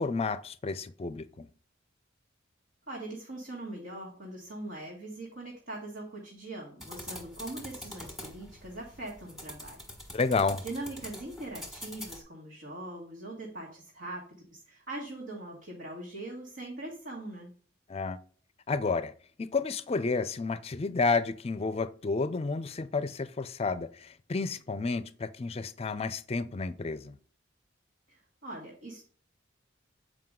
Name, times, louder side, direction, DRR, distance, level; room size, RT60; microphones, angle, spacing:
voice 1, 0.0-1.5 10.1-10.7 17.9-18.2 18.7-19.1 19.4-27.2, left 4 dB, 35° left, 0.4 m, -31 dB
voice 2, 2.9-9.8 10.6-17.6 28.1-29.1, right 2 dB, 70° right, 1.8 m, -41 dB
sound 1, 6.8-12.2, left 1 dB, ahead, 1.5 m, -45 dB
7.7 x 4.9 x 3.7 m
head